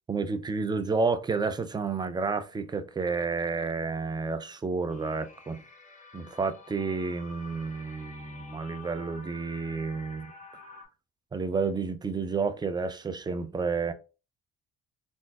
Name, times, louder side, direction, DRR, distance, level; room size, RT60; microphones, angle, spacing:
voice 1, 0.1-5.6 6.1-10.3 11.3-13.9, right 4 dB, 15° right, 0.3 m, -30 dB
sound 1, 4.9-10.8, left 3 dB, 25° left, 0.8 m, -49 dB
3.7 x 2.5 x 2.3 m
cardioid pair, 90°, 30 cm